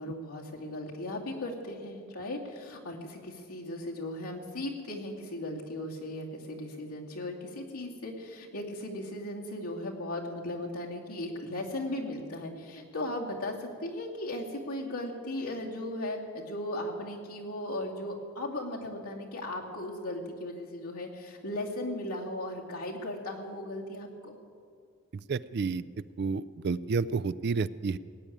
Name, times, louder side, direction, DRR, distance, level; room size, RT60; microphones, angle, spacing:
voice 1, 0.0-24.4, left 1 dB, 80° left, -1 dB, 2.4 m, -37 dB
voice 2, 25.3-25.8 26.2-28.0, right 4 dB, 45° right, 17 dB, 0.3 m, -30 dB
17.5 x 8.7 x 9.2 m, 2.2 s
head